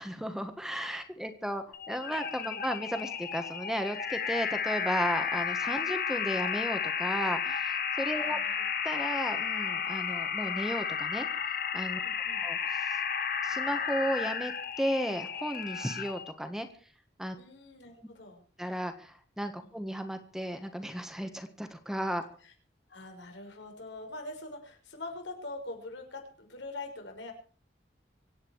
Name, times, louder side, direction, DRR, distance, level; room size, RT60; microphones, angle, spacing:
voice 1, 0.0-8.4 8.8-11.3 11.7-12.0 12.4-13.0 13.4-16.7 17.2-17.4 18.6-22.2, equal, 5° right, 8 dB, 1.5 m, -34 dB
sound 1, 1.7-16.3, left 7 dB, 50° left, 1.8 m, -33 dB
voice 2, 8.1-8.6 12.0-12.4 17.4-18.4 19.6-19.7 22.4-22.5 22.9-27.3, left 2 dB, 85° left, 3 dB, 6.0 m, -44 dB
25.5 x 9.5 x 4.8 m, 0.43 s
head